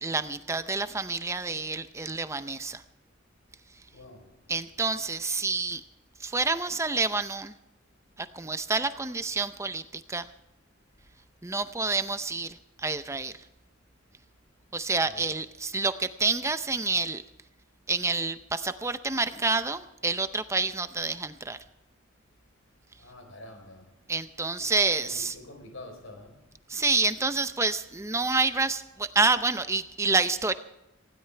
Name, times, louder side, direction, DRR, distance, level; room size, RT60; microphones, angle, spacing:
voice 1, 0.0-2.8 4.5-5.8 6.2-7.5 8.2-10.3 11.4-13.3 14.7-17.2 17.9-21.6 24.1-25.3 26.7-30.5, right 3 dB, 15° right, 0.6 m, -28 dB
voice 2, 3.9-4.5 14.1-14.2 15.0-15.3 22.6-24.0 24.6-26.6, left 2 dB, 85° left, 4.1 m, -48 dB
19.5 x 16.5 x 3.3 m
head